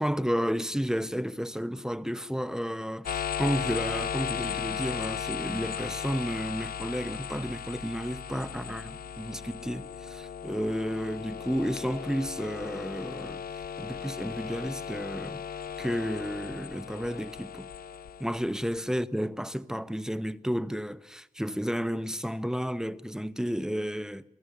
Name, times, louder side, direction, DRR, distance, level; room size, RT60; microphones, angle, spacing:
voice 1, 0.0-13.4 13.8-15.4 15.8-17.7 18.2-24.2, equal, 5° right, 0.9 m, -32 dB
sound 1, 3.1-18.8, left 8 dB, 80° left, 0.8 m, -36 dB
27.5 x 17.5 x 7.0 m
wide cardioid pair, 85°, 15 cm